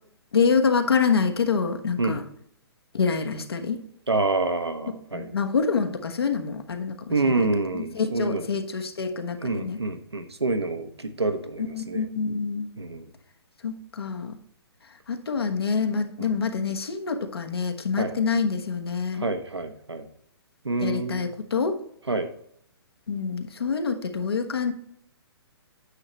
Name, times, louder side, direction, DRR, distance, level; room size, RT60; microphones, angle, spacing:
voice 1, 0.3-2.2 2.9-3.8 5.1-7.5 7.7-9.8 11.6-12.7 13.6-14.4 15.1-19.3 20.8-21.8 23.1-24.7, left 5 dB, 70° left, 5 dB, 1.2 m, -26 dB
voice 2, 4.1-5.3 7.1-8.5 9.4-12.0 12.8-13.1 16.2-16.4 18.0-18.1 19.1-20.1 20.6-21.3 22.1-22.3, right 3 dB, 85° right, 7 dB, 1.2 m, -27 dB
9.7 x 6.7 x 3.1 m, 0.68 s
figure-of-eight pair, 125°, 13 cm